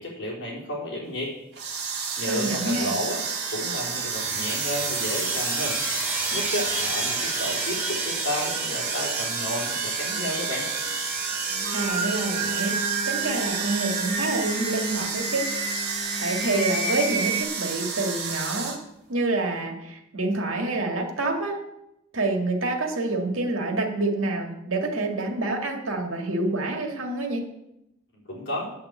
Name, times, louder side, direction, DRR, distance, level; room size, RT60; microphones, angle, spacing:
voice 1, 0.0-1.4 1.9-3.2 3.5-5.8 6.3-10.7 28.1-28.7, left 1 dB, 60° left, -4 dB, 3.8 m, -32 dB
sound 1, 1.5-18.8, right 5 dB, 50° right, 2.2 m, -31 dB
voice 2, 2.2-2.9 11.7-12.8 13.1-15.5 16.2-18.8 19.1-21.6 22.1-27.5, right 2 dB, 80° right, 2 dB, 2.0 m, -27 dB
sound 2, 3.8-15.2, right 2 dB, 10° right, 3.3 m, -33 dB
Singing, 11.5-17.4, right 2 dB, 30° right, 1.4 m, -30 dB
8.8 x 6.7 x 8.4 m, 0.87 s
head